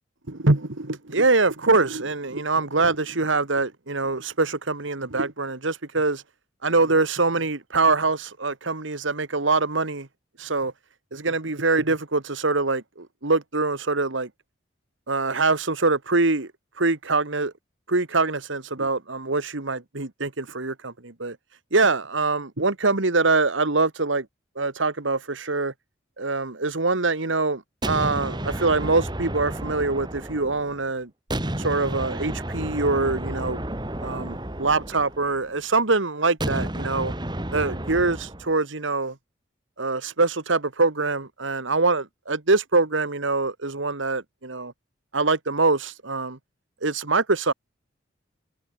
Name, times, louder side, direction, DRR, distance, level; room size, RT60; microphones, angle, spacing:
voice 1, 0.3-6.2 6.6-10.1 10.4-10.7 11.1-14.3 15.1-16.5 16.8-17.5 17.9-21.4 21.7-24.2 24.6-25.7 26.2-31.1 31.6-33.6 34.0-37.1 37.5-39.1 39.8-44.7 45.1-46.4 46.8-47.5, right 3 dB, 80° right, 1.8 m, -24 dB
sound 1, 27.8-30.8 31.3-35.5 36.4-38.5, right 1 dB, 20° right, 2.2 m, -31 dB
head